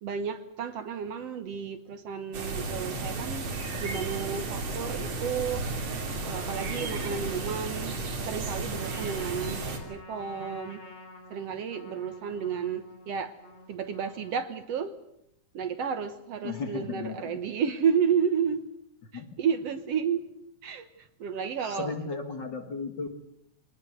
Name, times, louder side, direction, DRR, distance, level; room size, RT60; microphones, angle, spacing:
voice 1, 0.0-3.5 3.8-5.6 6.2-8.0 8.3-9.6 9.9-10.8 11.3-13.3 13.7-14.9 15.5-18.6 19.1-20.2 20.6-21.9, right 7 dB, 60° right, 9 dB, 2.0 m, -31 dB
sound 1, 2.3-9.8, right 3 dB, 90° right, 4.5 m, -33 dB
Trumpet, 5.9-14.6, left 2 dB, 60° left, 7.6 m, -49 dB
voice 2, 16.4-17.4 19.1-19.3 21.6-23.1, left 4 dB, 40° left, 6 dB, 2.1 m, -35 dB
24.0 x 19.5 x 7.9 m, 0.77 s
omnidirectional pair, 3.5 m